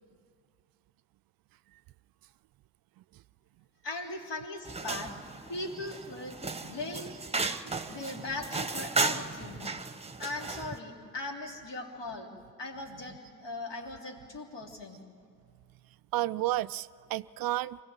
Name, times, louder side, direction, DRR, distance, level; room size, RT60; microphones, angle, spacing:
voice 1, 3.8-5.1 5.5-7.1 7.9-9.7 10.2-12.3 12.6-15.0, left 2 dB, 60° left, 2 dB, 3.1 m, -39 dB
sound 1, 4.6-10.8, right 3 dB, 15° right, 1.2 m, -35 dB
voice 2, 7.6-8.0 16.1-17.8, right 16 dB, 50° right, 15 dB, 0.4 m, -32 dB
24.5 x 15.5 x 8.9 m, 2.2 s
hypercardioid pair, 40°, 48 cm